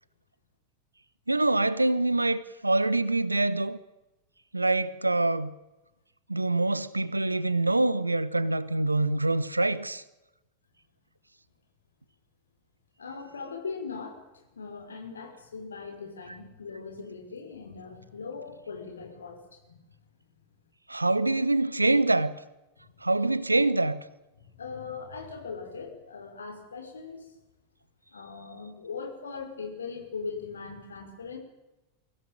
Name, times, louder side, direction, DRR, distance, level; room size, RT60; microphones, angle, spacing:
voice 1, 1.3-3.8 4.5-5.5 6.3-10.0 20.9-22.3 23.0-24.0, right 2 dB, 85° right, 1.2 m, -25 dB
voice 2, 13.0-19.8 24.5-27.3 28.1-31.4, left 5 dB, 70° left, 5.5 m, -40 dB
23.5 x 17.0 x 9.1 m
figure-of-eight pair, 90°, 0 cm